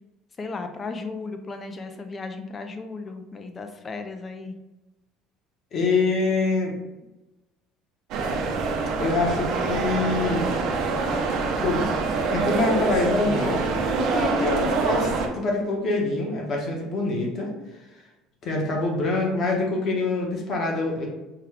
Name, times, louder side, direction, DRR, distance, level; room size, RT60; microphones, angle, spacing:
voice 1, 0.4-4.5, left 3 dB, 20° left, 7 dB, 0.4 m, -35 dB
voice 2, 5.7-6.7 9.0-10.5 11.6-11.9 12.3-13.7 14.0-17.5 18.4-21.1, left 3 dB, 35° left, 0 dB, 0.9 m, -25 dB
sound 1, 8.1-15.3, right 4 dB, 55° right, 0.6 m, -25 dB
4.7 x 2.2 x 3.6 m, 1.0 s
cardioid pair, 160°, 0 cm